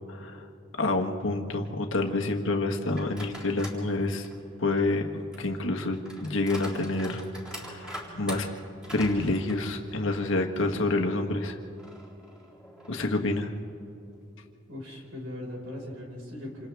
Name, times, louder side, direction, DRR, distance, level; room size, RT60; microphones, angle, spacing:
voice 1, 0.1-0.4 0.8-4.3 4.6-5.1 5.4-7.2 7.5-7.9 8.1-8.5 8.9-11.5 12.9-13.5, left 2 dB, 65° left, 3 dB, 1.5 m, -28 dB
sound 1, 2.9-3.8 4.2-10.3 10.7-10.8 11.8-13.3, equal, 5° right, 3.9 m, -44 dB
voice 2, 14.7-16.7, left 1 dB, 70° right, -1 dB, 5.0 m, -39 dB
28.0 x 27.5 x 3.5 m, 2.8 s
head